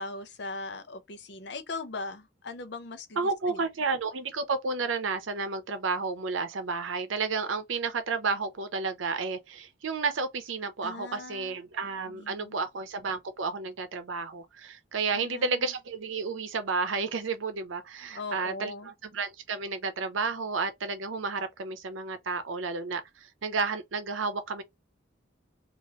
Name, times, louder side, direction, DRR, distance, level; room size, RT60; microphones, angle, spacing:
voice 1, 0.0-3.2 3.5-3.6 10.8-11.6 12.1-12.6 15.1-15.7 18.1-18.9, left 3 dB, 60° left, 0.6 m, -39 dB
voice 2, 3.2-24.6, right 4 dB, 85° right, 0.6 m, -31 dB
2.8 x 2.5 x 3.0 m
head